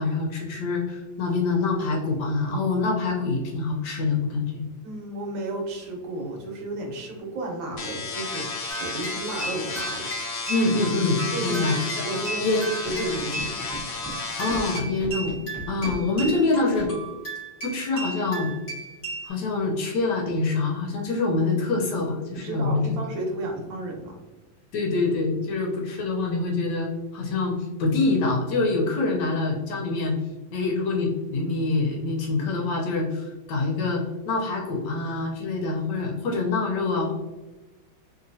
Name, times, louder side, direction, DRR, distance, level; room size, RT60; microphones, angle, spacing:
voice 1, 0.0-4.7 10.5-12.0 12.4-13.1 14.4-15.3 15.7-16.9 17.6-18.5 19.2-23.0 24.7-30.1 30.5-37.1, left 3 dB, 70° left, 0 dB, 1.1 m, -25 dB
voice 2, 4.8-10.1 11.3-11.6 12.0-13.7 22.4-24.2, right 2 dB, 70° right, 0 dB, 1.5 m, -33 dB
sound 1, 7.8-14.8, left 3 dB, 85° left, 0.7 m, -32 dB
sound 2, 8.7-19.3, right 3 dB, 35° left, 1.3 m, -36 dB
Scratching (performance technique), 12.8-14.1 14.5-14.6 15.0-16.3 16.8-16.9, right 1 dB, ahead, 0.4 m, -36 dB
3.2 x 2.8 x 2.6 m, 1.1 s
omnidirectional pair, 2.2 m